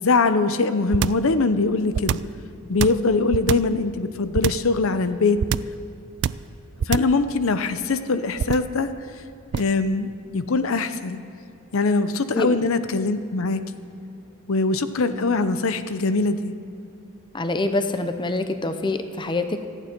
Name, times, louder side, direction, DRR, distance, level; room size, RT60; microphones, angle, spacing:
voice 1, 0.0-2.2 2.7-5.4 6.9-8.9 9.5-11.2 11.7-13.6 14.5-16.5, left 3 dB, 75° left, 11 dB, 0.7 m, -22 dB
sound 1, 0.9-1.3 1.9-2.4 2.8-3.8 4.3-4.7 5.4-5.8 6.2-6.5 6.8-7.2 8.4-8.8 9.5-9.8, right 7 dB, 55° right, 0.3 m, -24 dB
voice 2, 17.3-19.7, left 2 dB, 20° left, 8 dB, 0.7 m, -25 dB
26.5 x 9.0 x 4.5 m, 2.7 s
head